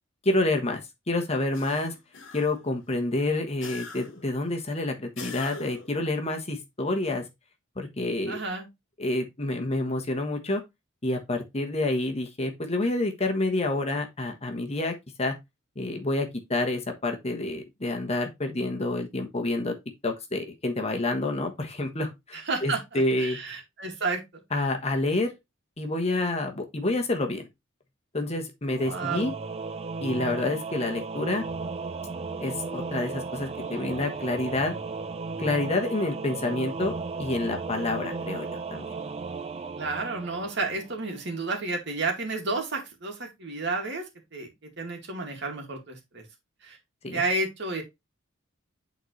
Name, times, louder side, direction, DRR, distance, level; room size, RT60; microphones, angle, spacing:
voice 1, 0.2-0.8 1.1-1.9 2.3-7.2 7.8-8.4 9.0-10.6 11.0-14.9 15.2-15.3 15.8-19.7 20.0-23.4 24.5-25.3 25.8-27.5 28.1-29.3 30.0-31.4 32.4-34.7 35.4-36.9 37.2-38.8 47.0-47.2, left 2 dB, 30° left, 1.2 m, -28 dB
sound 1, 1.5-2.7 3.6-4.3 5.2-6.0, left 4 dB, 65° left, 1.3 m, -42 dB
voice 2, 8.3-8.7 22.3-24.2 28.8-29.3 39.8-44.0 44.3-46.2 46.6-46.8 47.1-47.8, right 3 dB, 60° right, 2.2 m, -31 dB
Singing / Musical instrument, 28.7-41.2, right 4 dB, 30° right, 0.5 m, -35 dB
9.0 x 4.1 x 3.2 m
head